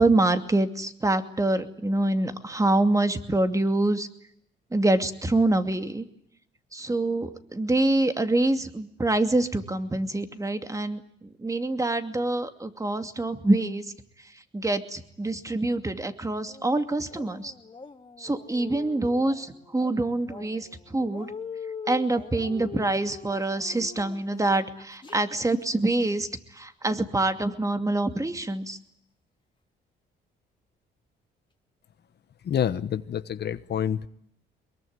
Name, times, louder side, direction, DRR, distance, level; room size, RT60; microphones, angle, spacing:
voice 1, 0.0-4.1 4.7-6.0 6.7-11.0 11.4-13.8 14.5-17.5 18.2-21.3 21.9-26.3 26.5-28.8, right 2 dB, 15° right, 8 dB, 2.6 m, -25 dB
sound 1, 16.5-25.4 25.8-25.9, left 5 dB, 25° left, 3.2 m, -43 dB
voice 2, 32.4-34.1, left 9 dB, 55° left, 12 dB, 1.2 m, -27 dB
23.5 x 22.0 x 9.5 m, 0.71 s
cardioid pair, 90°, 20 cm